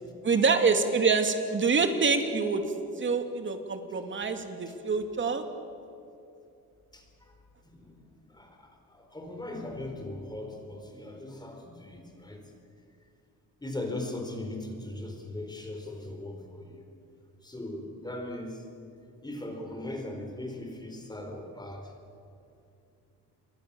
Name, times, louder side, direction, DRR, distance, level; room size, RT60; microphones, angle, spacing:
voice 1, 0.2-2.6 3.0-5.4, right 4 dB, 30° right, 6 dB, 2.6 m, -26 dB
voice 2, 6.9-7.3 7.6-7.9 8.3-12.5 13.6-16.8 17.4-18.6 19.2-21.9, left 1 dB, 10° left, 3 dB, 4.4 m, -39 dB
28.0 x 23.5 x 7.1 m, 2.6 s
cardioid pair, 130°, 37 cm